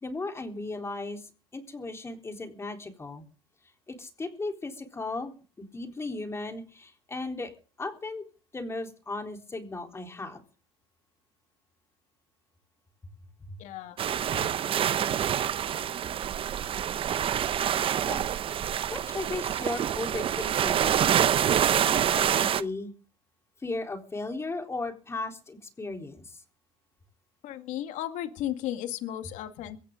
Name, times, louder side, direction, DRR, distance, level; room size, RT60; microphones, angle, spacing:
voice 1, 0.0-3.2 3.9-7.5 7.8-8.2 8.5-10.4 13.5-13.6 18.1-18.4 18.9-21.3 21.6-22.9 23.6-26.4, left 3 dB, 20° left, 4 dB, 3.9 m, -36 dB
voice 2, 13.6-14.0 27.4-29.8, left 12 dB, 65° left, 8 dB, 2.1 m, -34 dB
sound 1, 14.0-22.6, right 9 dB, 40° right, 0.8 m, -26 dB
23.0 x 16.0 x 3.9 m, 0.38 s
supercardioid pair, 105°, 14 cm